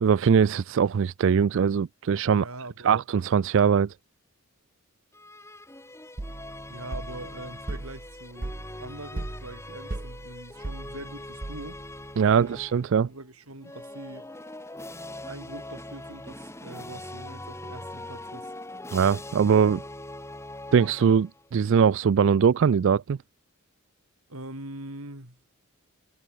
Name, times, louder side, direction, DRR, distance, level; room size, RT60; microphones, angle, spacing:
voice 1, 0.0-2.5 2.8-3.9 12.2-13.1 18.9-19.8 20.7-23.2, right 6 dB, 60° right, 0.3 m, -21 dB
voice 2, 2.3-3.0 6.7-11.8 12.3-12.6 13.1-14.3 14.8-14.9 15.2-18.5 24.3-25.4, right 2 dB, 85° right, 7.4 m, -43 dB
sound 1, 5.1-13.0 13.6-21.5, left 1 dB, 15° left, 6.7 m, -42 dB
sound 2, 6.2-12.0, right 2 dB, 40° right, 0.9 m, -38 dB
head